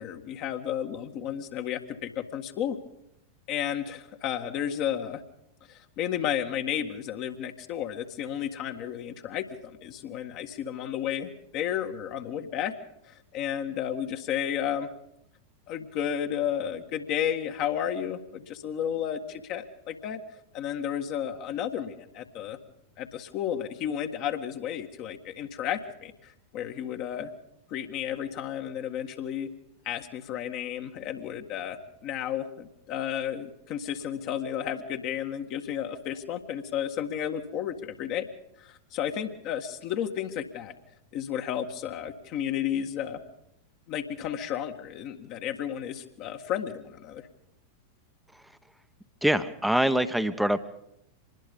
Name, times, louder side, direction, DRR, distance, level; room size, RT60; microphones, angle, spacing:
voice 1, 0.0-2.8 3.5-5.2 5.7-12.7 13.1-14.9 15.7-20.2 20.5-22.6 23.0-27.3 27.7-29.5 29.9-38.2 38.6-40.7 41.1-43.2 43.9-47.3, left 9 dB, 40° left, 5 dB, 1.8 m, -32 dB
voice 2, 49.2-50.6, right 1 dB, ahead, 11 dB, 1.2 m, -24 dB
25.5 x 20.5 x 5.4 m, 0.79 s
figure-of-eight pair, 90°, 0 cm